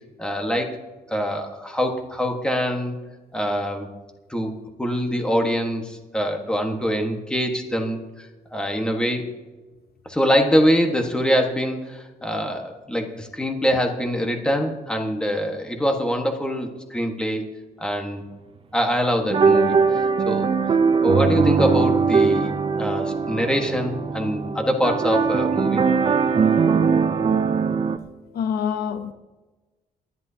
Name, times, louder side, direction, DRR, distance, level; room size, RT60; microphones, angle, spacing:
voice 1, 0.2-0.7 1.1-3.0 3.3-3.9 4.3-8.3 8.5-9.3 10.1-17.5 17.8-18.2 18.7-20.5 21.0-22.5 22.8-25.8, equal, 5° left, 1.5 m, -24 dB
sound 1, 19.3-28.0, right 5 dB, 35° right, 0.6 m, -20 dB
voice 2, 28.3-29.1, left 7 dB, 75° left, 0.9 m, -26 dB
29.0 x 11.0 x 2.8 m
wide cardioid pair, 165°, 16 cm